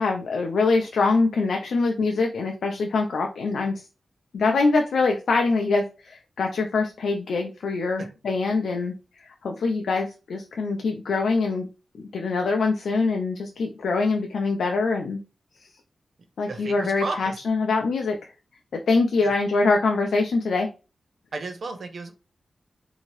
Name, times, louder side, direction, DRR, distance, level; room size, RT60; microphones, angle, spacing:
voice 1, 0.0-3.7 4.3-8.9 9.2-11.7 12.1-15.2 16.4-18.2 18.7-20.7, left 3 dB, 90° left, 3 dB, 0.4 m, -24 dB
voice 2, 16.5-17.4 19.2-19.3 21.3-22.1, right 3 dB, 65° right, 6 dB, 0.6 m, -33 dB
2.7 x 2.7 x 3.0 m, 0.32 s
cardioid pair, 75°, 0 cm